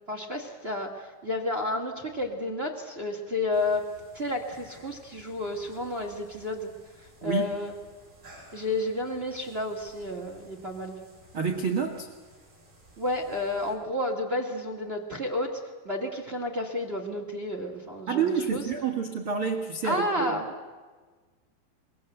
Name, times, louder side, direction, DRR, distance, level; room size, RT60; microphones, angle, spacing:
voice 1, 0.1-6.7 7.2-7.7 8.5-11.0 13.0-18.6 19.8-20.7, left 2 dB, 55° right, 2 dB, 0.6 m, -31 dB
sound 1, 3.5-13.7, right 1 dB, 20° right, 7.8 m, -55 dB
voice 2, 11.3-12.1 18.1-20.4, right 6 dB, 85° right, 2 dB, 1.1 m, -28 dB
26.0 x 22.5 x 8.1 m, 1.4 s
omnidirectional pair, 5.5 m